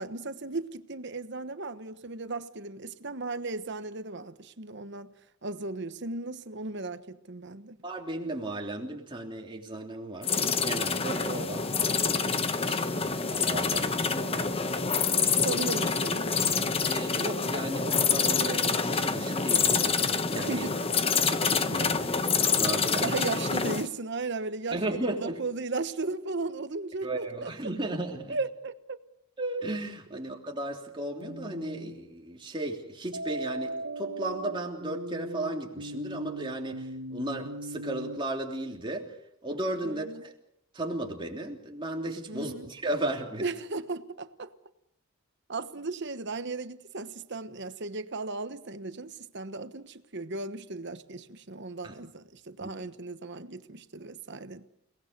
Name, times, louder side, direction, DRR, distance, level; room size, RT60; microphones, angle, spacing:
voice 1, 0.0-5.1 5.4-7.8 15.4-16.4 20.4-20.8 23.0-27.5 28.3-29.0 30.1-30.2 39.8-40.2 42.3-42.7 43.4-44.5 45.5-54.7, right 3 dB, 55° right, 1.2 m, -36 dB
voice 2, 7.8-15.5 16.8-20.6 21.2-23.1 24.7-25.4 27.0-28.4 29.4-39.2 39.4-40.3 40.7-43.5 51.8-51.9 52.6-52.7, right 1 dB, 20° right, 3.2 m, -35 dB
sound 1, 10.2-23.9, left 5 dB, 25° left, 0.9 m, -27 dB
sound 2, 31.2-32.0 33.1-38.2, right 1 dB, 85° right, 1.8 m, -38 dB
29.5 x 19.0 x 6.7 m
head